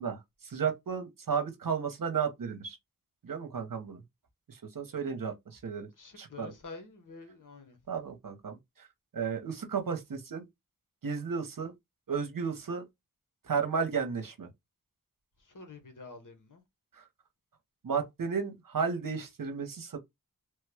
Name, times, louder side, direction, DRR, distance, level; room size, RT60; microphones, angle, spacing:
voice 1, 0.0-2.8 3.2-4.0 4.5-5.9 6.2-6.5 7.9-8.9 9.1-10.5 11.0-11.7 12.1-12.8 13.4-14.5 17.0-17.1 17.8-20.0, right 6 dB, 70° right, 0.8 m, -33 dB
voice 2, 6.0-7.8 15.4-16.6, left 3 dB, 60° left, 1.1 m, -48 dB
3.2 x 2.2 x 3.4 m
wide cardioid pair, 50°, 35 cm